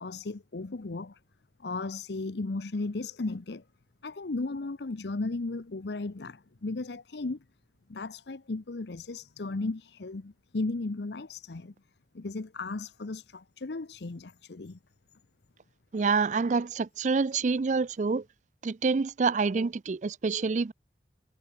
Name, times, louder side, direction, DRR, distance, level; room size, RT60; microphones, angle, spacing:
voice 1, 0.0-1.2 1.6-3.6 4.0-7.4 7.9-11.7 12.1-14.8, left 3 dB, 75° left, 0.8 m, -35 dB
voice 2, 15.9-18.2 18.6-20.7, right 4 dB, 45° right, 0.4 m, -27 dB
head